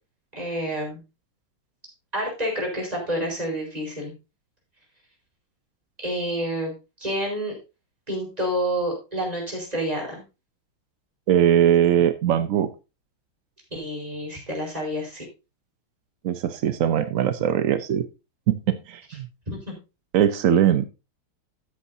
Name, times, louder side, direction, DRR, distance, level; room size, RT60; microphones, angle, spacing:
voice 1, 0.3-1.0 2.1-4.1 6.0-6.7 7.0-7.6 8.1-10.2 13.7-15.2 19.5-19.6, equal, 15° right, -2 dB, 4.7 m, -28 dB
voice 2, 11.3-12.7 16.2-18.1 18.5-19.3 20.1-20.9, right 10 dB, 75° right, 11 dB, 0.7 m, -20 dB
13.5 x 8.6 x 2.7 m, 0.28 s
omnidirectional pair, 2.3 m